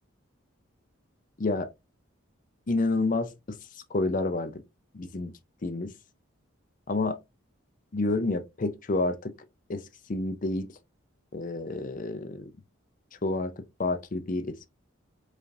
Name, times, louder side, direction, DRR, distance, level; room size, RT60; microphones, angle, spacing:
voice 1, 1.4-1.7 2.7-3.3 3.9-4.6 4.9-5.3 5.6-5.9 6.9-7.2 7.9-9.3 9.7-9.8 10.1-10.7 11.3-12.5 13.2-13.5 13.8-14.5, left 2 dB, 40° left, 0.5 m, -29 dB
4.8 x 2.5 x 2.7 m
head